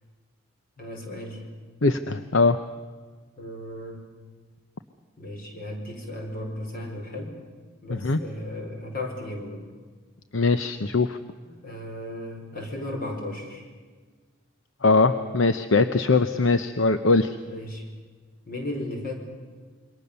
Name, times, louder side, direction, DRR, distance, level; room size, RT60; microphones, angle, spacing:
voice 1, 0.8-1.4 3.4-4.0 5.2-7.3 7.8-9.6 11.4-13.7 17.5-17.8 18.5-19.1, left 1 dB, 45° left, 2 dB, 4.9 m, -35 dB
voice 2, 1.8-2.6 7.9-8.2 10.3-11.2 14.8-17.4, left 3 dB, 65° left, 10 dB, 0.8 m, -21 dB
27.5 x 23.5 x 6.9 m, 1.5 s
head